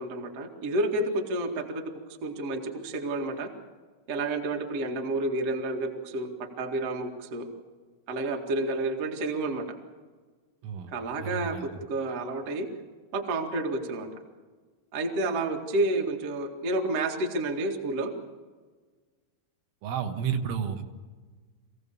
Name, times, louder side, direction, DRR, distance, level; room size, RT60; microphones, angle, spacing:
voice 1, 0.0-1.8 2.2-3.5 4.1-6.3 6.6-7.5 8.1-9.7 10.9-12.7 13.1-14.1 14.9-18.1, right 2 dB, 45° right, 2 dB, 2.1 m, -30 dB
voice 2, 11.2-11.7 19.8-20.8, right 7 dB, 75° right, 4 dB, 3.8 m, -31 dB
26.0 x 16.5 x 7.0 m, 1.4 s
omnidirectional pair, 5.7 m